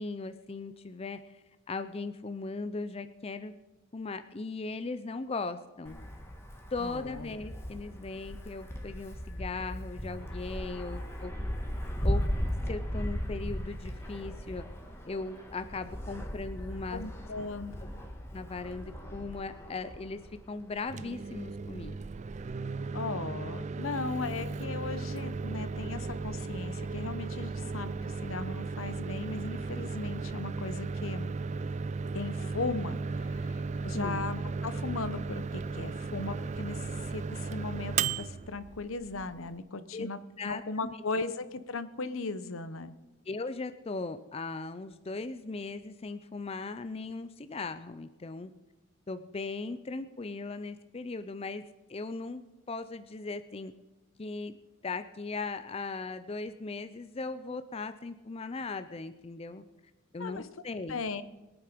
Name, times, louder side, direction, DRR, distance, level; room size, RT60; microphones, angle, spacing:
voice 1, 0.0-3.5 3.9-6.0 6.7-11.3 12.0-12.2 12.7-14.6 15.0-17.0 18.3-20.2 20.5-22.0 33.9-34.2 39.9-40.1 40.4-40.9 43.3-48.5 49.1-51.6 51.9-52.4 52.7-53.7 54.2-54.6 54.8-59.6 60.1-61.0, left 3 dB, 30° left, 11 dB, 0.5 m, -38 dB
Wind, 5.8-20.7, equal, 15° left, 1.6 m, -37 dB
voice 2, 6.8-7.4 16.9-17.8 22.9-31.3 32.1-40.2 40.4-42.9 60.2-60.5 60.9-61.2, left 3 dB, 80° left, 13 dB, 0.9 m, -37 dB
Microwave oven, 20.8-39.6, right 4 dB, 35° right, 0.4 m, -36 dB
21.5 x 8.9 x 5.1 m, 1.0 s
head